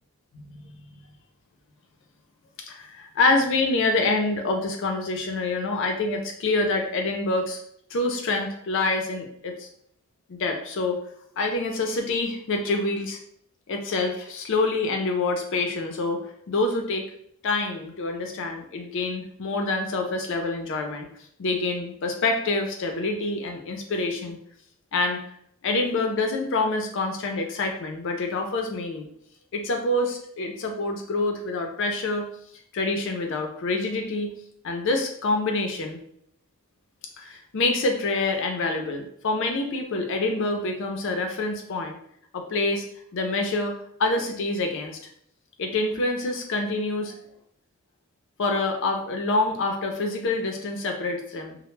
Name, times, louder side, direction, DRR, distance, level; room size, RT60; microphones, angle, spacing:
voice 1, 0.3-1.2 2.7-7.6 7.9-9.7 10.3-11.0 11.4-13.2 13.7-16.2 16.5-17.0 17.4-21.1 21.4-24.4 24.9-25.2 25.6-29.1 29.5-32.2 32.7-34.3 34.6-36.0 37.2-42.0 42.3-42.9 43.1-45.0 45.6-47.1 48.4-51.6, left 2 dB, 60° left, 3 dB, 0.4 m, -26 dB
2.0 x 2.0 x 3.1 m, 0.69 s
head